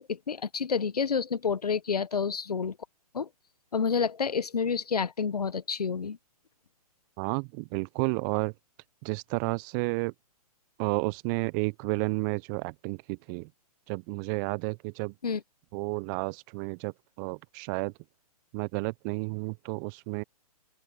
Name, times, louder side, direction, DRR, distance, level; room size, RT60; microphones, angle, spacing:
voice 1, 0.0-2.8 3.1-3.3 3.7-6.2 15.2-15.4, left 6 dB, 80° left, 1.2 m, -29 dB
voice 2, 7.2-8.5 9.0-10.1 10.8-13.5 13.9-15.1 15.7-17.9 18.5-20.2, right 30 dB, 30° right, 0.8 m, -31 dB
open air
figure-of-eight pair, 125°, 20 cm